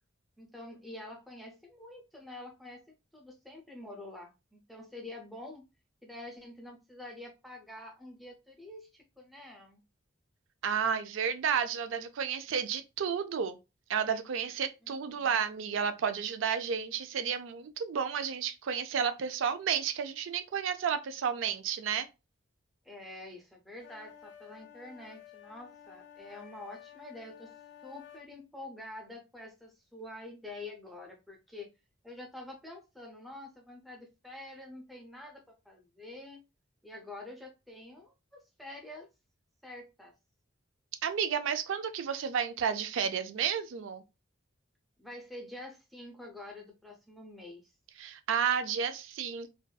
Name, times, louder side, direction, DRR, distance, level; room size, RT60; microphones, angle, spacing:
voice 1, 0.4-2.8 3.1-5.6 6.0-9.8 14.8-15.4 22.8-27.5 27.8-31.7 32.0-36.4 36.8-39.1 39.6-40.1 45.0-47.7, left 2 dB, ahead, 0.5 m, -47 dB
voice 2, 10.6-13.6 13.9-22.1 41.0-44.0 48.0-49.5, right 7 dB, 70° right, 0.3 m, -31 dB
sound 1, 23.8-28.3, left 10 dB, 60° left, 0.5 m, -53 dB
2.5 x 2.2 x 2.2 m
head